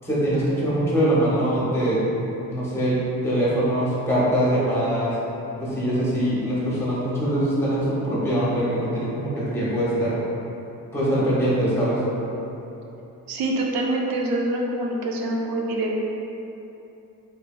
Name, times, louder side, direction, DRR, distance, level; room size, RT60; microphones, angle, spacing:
voice 1, 0.0-2.0 2.5-5.2 5.6-10.2 10.9-12.0, right 1 dB, 10° left, -8 dB, 0.7 m, -23 dB
voice 2, 13.3-16.0, right 1 dB, 85° right, -1 dB, 0.6 m, -25 dB
3.5 x 3.2 x 2.2 m, 3.0 s
cardioid pair, 180°, 34 cm